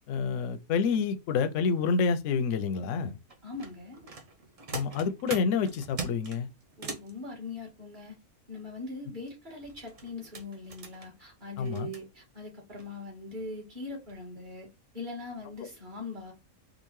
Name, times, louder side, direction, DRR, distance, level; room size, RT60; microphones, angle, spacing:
voice 1, 0.1-3.1 4.7-6.5 11.6-11.9, left 5 dB, 70° left, 0.8 m, -28 dB
sound 1, 3.3-7.1 9.6-12.0 12.8-12.9 13.3-13.5 13.9-14.2 14.5-14.6, right 3 dB, 60° right, 0.3 m, -41 dB
voice 2, 3.4-4.0 6.8-8.2 8.5-14.7 14.9-16.3, left 2 dB, 35° right, 1.5 m, -41 dB
3.7 x 2.3 x 3.0 m
omnidirectional pair, 1.6 m